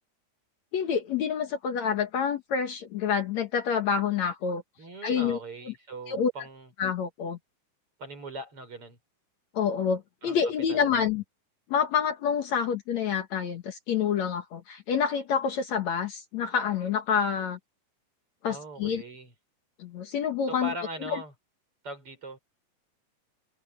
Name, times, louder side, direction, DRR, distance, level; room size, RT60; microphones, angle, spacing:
voice 1, 0.7-4.6 5.0-5.4 5.7-5.8 6.1-6.3 6.8-7.4 9.6-11.2 11.7-17.6 18.4-19.0 19.8-20.7 21.0-21.2, left 7 dB, 60° left, 2.5 m, -27 dB
voice 2, 4.8-6.7 8.0-9.0 10.2-10.4 10.7-11.0 18.5-19.3 20.5-21.3 21.8-22.4, right 1 dB, 40° right, 6.7 m, -40 dB
omnidirectional pair, 3.8 m